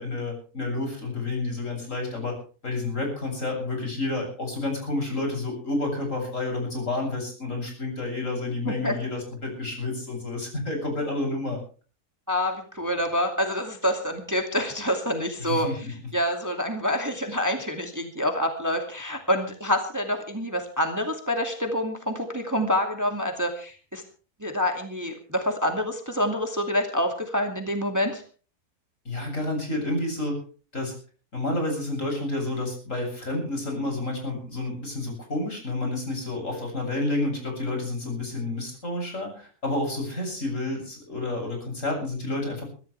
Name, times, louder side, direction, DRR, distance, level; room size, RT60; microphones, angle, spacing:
voice 1, 0.0-2.4 2.6-11.6 15.4-15.9 29.0-30.4 30.7-30.9 31.3-42.6, left 2 dB, 55° left, 2 dB, 8.1 m, -30 dB
voice 2, 8.6-8.9 12.3-15.9 16.1-24.0 24.4-28.2, equal, 10° right, 4 dB, 2.3 m, -27 dB
23.5 x 14.5 x 3.4 m, 0.39 s
omnidirectional pair, 1.6 m